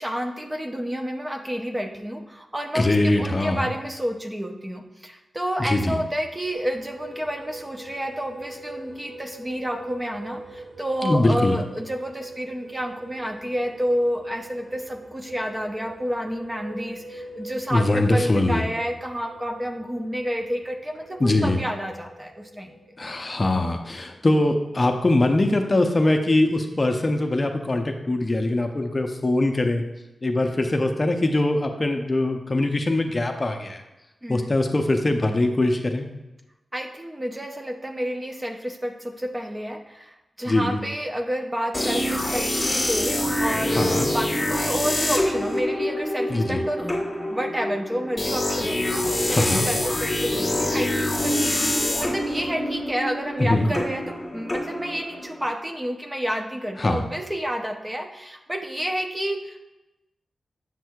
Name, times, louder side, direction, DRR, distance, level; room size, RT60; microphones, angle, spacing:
voice 1, 0.0-22.8 34.2-34.5 36.7-46.8 47.3-59.6, equal, 15° right, 4 dB, 0.6 m, -30 dB
voice 2, 2.7-3.7 5.7-6.0 11.0-11.6 17.7-18.7 21.2-21.6 23.0-29.8 30.2-33.8 34.3-36.1 40.5-40.8 43.7-44.1 46.3-46.6 49.2-49.7 53.4-53.7 56.8-57.0, left 2 dB, 30° left, 4 dB, 0.6 m, -22 dB
sound 1, 6.5-23.7, right 1 dB, 85° right, 1.2 m, -42 dB
sound 2, 41.7-55.5, left 1 dB, 15° left, 1.4 m, -26 dB
7.3 x 6.1 x 2.3 m, 0.99 s
wide cardioid pair, 95°, 0 cm